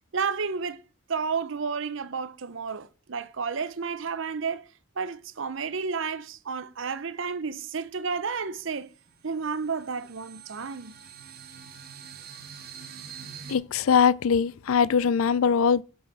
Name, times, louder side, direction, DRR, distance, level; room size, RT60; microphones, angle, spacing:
voice 1, 0.1-0.8 1.1-4.7 5.0-8.9 9.2-10.9, right 5 dB, 60° right, 0.6 m, -31 dB
sound 1, 8.1-8.2 8.6-13.6, right 7 dB, 45° right, 1.4 m, -45 dB
voice 2, 13.5-15.8, left 6 dB, 75° left, 0.4 m, -22 dB
8.8 x 5.5 x 5.7 m
head